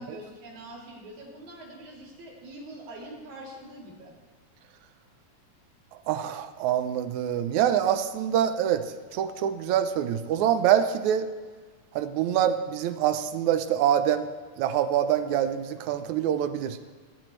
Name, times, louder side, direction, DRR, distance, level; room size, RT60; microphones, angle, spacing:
voice 1, 0.0-4.1, right 1 dB, 60° right, -4 dB, 4.5 m, -44 dB
voice 2, 6.1-11.3 11.9-14.3 14.6-16.8, right 10 dB, 75° right, 10 dB, 1.8 m, -25 dB
19.5 x 13.5 x 3.2 m, 1.4 s
omnidirectional pair, 3.9 m